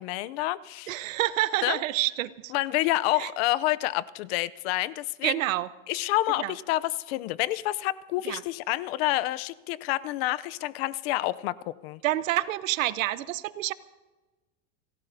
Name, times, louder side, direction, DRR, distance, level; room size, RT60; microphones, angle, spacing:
voice 1, 0.0-0.9 1.6-1.8 2.5-5.3 5.9-12.0, left 16 dB, 50° left, 17 dB, 0.6 m, -28 dB
voice 2, 0.9-2.5 3.2-3.3 5.2-5.7 6.4-6.5 8.2-8.4 12.0-13.7, right 15 dB, 85° right, 16 dB, 0.9 m, -28 dB
27.5 x 18.0 x 2.7 m, 1.2 s
supercardioid pair, 155°, 39 cm